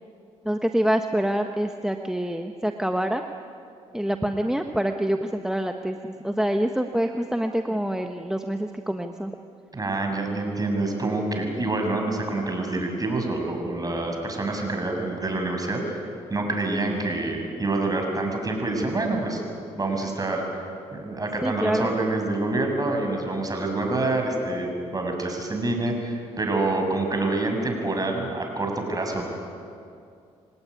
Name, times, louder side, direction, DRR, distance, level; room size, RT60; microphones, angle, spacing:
voice 1, 0.4-3.2 3.9-9.3 21.4-21.9, right 1 dB, 5° right, 5 dB, 1.3 m, -26 dB
voice 2, 9.7-16.0 16.3-19.4 19.8-20.7 20.9-29.2, right 2 dB, 30° right, 3 dB, 7.0 m, -27 dB
26.5 x 18.0 x 9.8 m, 2.5 s
supercardioid pair, 60°, 12 cm